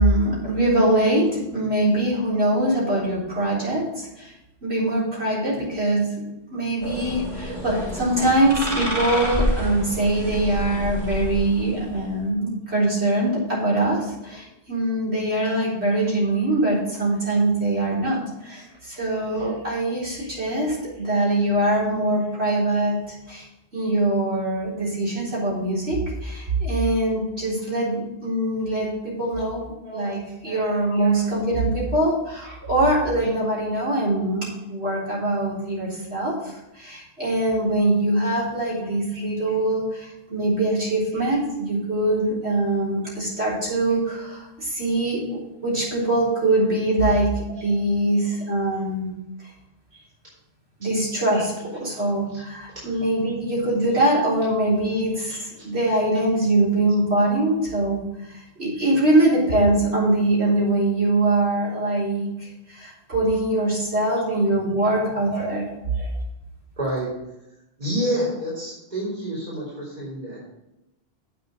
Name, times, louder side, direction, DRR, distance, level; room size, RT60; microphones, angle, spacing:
voice 1, 0.0-4.3 4.6-6.2 6.5-23.4 23.7-49.1 50.8-65.6, right 1 dB, 85° right, -7 dB, 4.2 m, -23 dB
sound 1, 6.8-12.2, equal, 25° right, 2.2 m, -29 dB
voice 2, 19.3-19.7 20.1-20.6 22.2-22.3 29.8-30.1 30.4-30.6 30.9-31.2 32.4-32.5 39.1-39.5 41.1-41.4 49.9-50.0 51.0-51.5 52.3-52.4 52.9-53.0 55.3-55.6 58.7-58.9 63.3-63.4 64.9-66.1 66.8-67.1 67.8-70.4, right 1 dB, 45° right, -8 dB, 3.9 m, -31 dB
7.8 x 6.6 x 6.4 m, 0.91 s
omnidirectional pair, 1.1 m